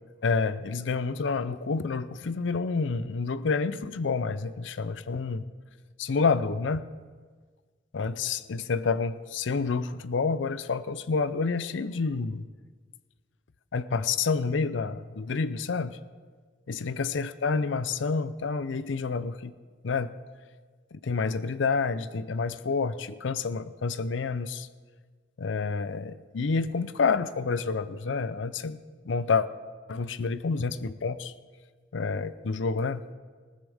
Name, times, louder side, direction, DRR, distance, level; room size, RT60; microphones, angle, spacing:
voice 1, 0.2-5.5 6.0-6.8 7.9-12.5 13.7-16.0 16.7-19.5 19.8-20.2 20.9-24.7 25.4-28.8 29.0-29.5 29.9-31.3 31.9-33.1, left 4 dB, 80° left, 14 dB, 0.5 m, -28 dB
19.5 x 15.5 x 3.5 m, 1.5 s
head